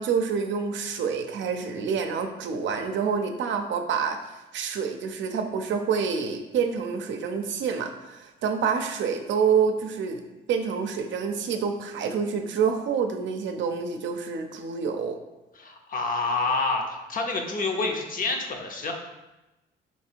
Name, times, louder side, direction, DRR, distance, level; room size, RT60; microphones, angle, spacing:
voice 1, 0.0-4.2 4.5-10.2 10.5-15.2, right 6 dB, 70° right, 6 dB, 0.5 m, -27 dB
voice 2, 15.6-18.9, left 3 dB, 45° left, 3 dB, 0.7 m, -28 dB
3.3 x 3.1 x 4.5 m, 1.0 s
cardioid pair, 90°, 20 cm